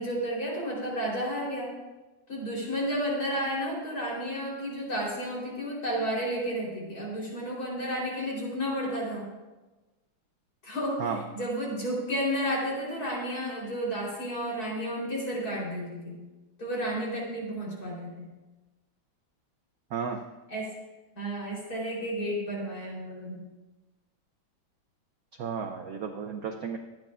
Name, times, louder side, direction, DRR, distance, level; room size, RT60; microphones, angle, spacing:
voice 1, 0.0-1.7 2.3-9.3 10.6-11.0 11.3-16.2 16.6-18.3 20.5-20.7 21.2-23.4, equal, 45° left, -4 dB, 4.2 m, -32 dB
voice 2, 19.9-20.2 25.4-26.8, right 6 dB, 65° right, 4 dB, 0.9 m, -33 dB
24.0 x 9.3 x 2.4 m, 1.1 s
omnidirectional pair, 2.2 m